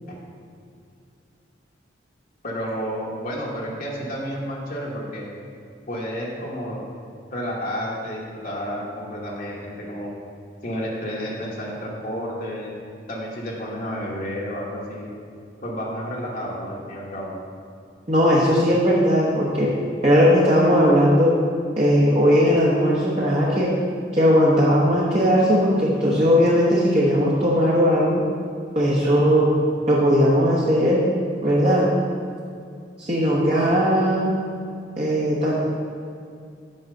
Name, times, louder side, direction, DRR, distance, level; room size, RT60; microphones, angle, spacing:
voice 1, 2.4-5.3 5.9-6.9 7.3-10.1 10.6-12.7 13.1-15.1 15.6-17.3, equal, 50° left, -4 dB, 1.1 m, -31 dB
voice 2, 18.1-19.7 20.0-21.3 21.8-23.7 24.1-28.2 28.7-29.5 29.9-31.0 31.4-31.9 33.0-34.3 35.0-35.6, equal, 35° right, -6 dB, 1.0 m, -18 dB
6.5 x 4.7 x 6.5 m, 2.4 s
head